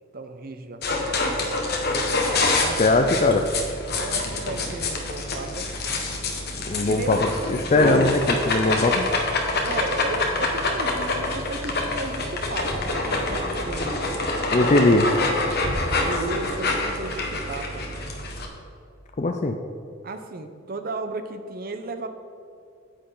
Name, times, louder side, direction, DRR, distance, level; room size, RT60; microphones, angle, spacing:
voice 1, 0.1-1.5 2.5-3.2 3.5-3.6 4.0-5.7 6.9-7.2 9.6-14.0 16.0-17.9 20.0-22.1, right 2 dB, 45° right, 8 dB, 0.7 m, -34 dB
sound 1, 0.8-18.5, left 2 dB, 50° left, 1.3 m, -26 dB
voice 2, 2.8-3.4 6.7-9.0 14.5-15.1 19.2-19.6, left 2 dB, 35° left, 4 dB, 0.4 m, -20 dB
9.7 x 8.6 x 3.9 m, 2.5 s
head